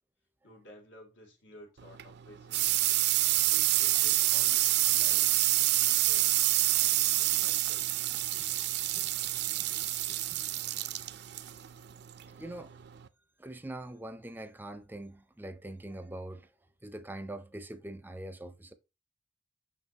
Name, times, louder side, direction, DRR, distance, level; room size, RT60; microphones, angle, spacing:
voice 1, 0.4-3.0 3.5-5.3 5.8-6.4 6.7-7.9, left 1 dB, 85° left, 3.0 m, -54 dB
sound 1, 1.8-13.1, right 16 dB, 65° right, 0.5 m, -28 dB
voice 2, 8.9-9.4 10.1-10.5 12.2-12.7 13.4-16.5 16.8-18.7, right 1 dB, 10° right, 0.5 m, -43 dB
6.0 x 5.8 x 2.8 m
head